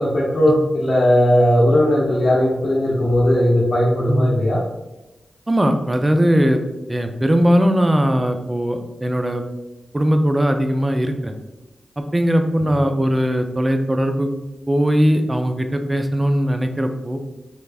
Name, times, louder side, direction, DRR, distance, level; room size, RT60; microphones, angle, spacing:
voice 1, 0.0-4.6 12.6-12.7, equal, 65° left, -7 dB, 0.7 m, -17 dB
voice 2, 5.5-6.6 6.9-9.5 9.9-11.3 12.0-14.3 14.7-17.2, equal, 25° right, 6 dB, 0.5 m, -19 dB
3.4 x 3.2 x 2.4 m, 1.0 s
cardioid pair, 45°, 0 cm